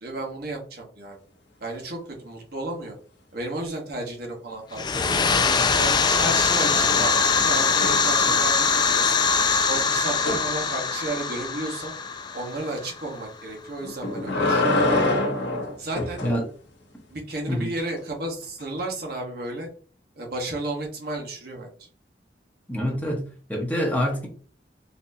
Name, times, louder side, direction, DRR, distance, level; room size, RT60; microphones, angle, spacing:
voice 1, 0.0-1.2 1.6-2.9 3.3-5.3 5.8-9.1 9.7-11.9 12.3-14.8 15.8-16.2 17.1-19.7 20.2-21.9, right 2 dB, 60° right, 1 dB, 1.1 m, -33 dB
sound 1, 4.7-13.3, left 5 dB, 25° left, 0.3 m, -22 dB
sound 2, 5.3-6.0 6.3-8.7 10.3-10.5 13.8-16.4 18.6-18.7, left 2 dB, 75° left, 0.9 m, -26 dB
voice 2, 22.7-23.2 23.5-24.3, equal, 10° left, -1 dB, 0.8 m, -25 dB
4.2 x 2.7 x 2.6 m, 0.43 s
head